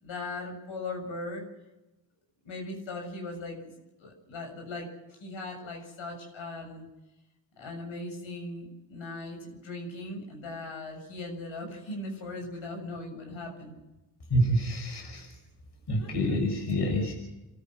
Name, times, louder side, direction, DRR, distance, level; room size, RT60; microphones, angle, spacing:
voice 1, 0.0-1.5 2.4-6.9 7.6-13.8 15.1-15.2 16.0-16.4, left 2 dB, 70° left, 2 dB, 7.4 m, -39 dB
voice 2, 14.3-15.3 15.9-17.1, equal, 55° left, 2 dB, 6.3 m, -27 dB
28.0 x 13.5 x 7.7 m, 1.0 s
supercardioid pair, 60°, 48 cm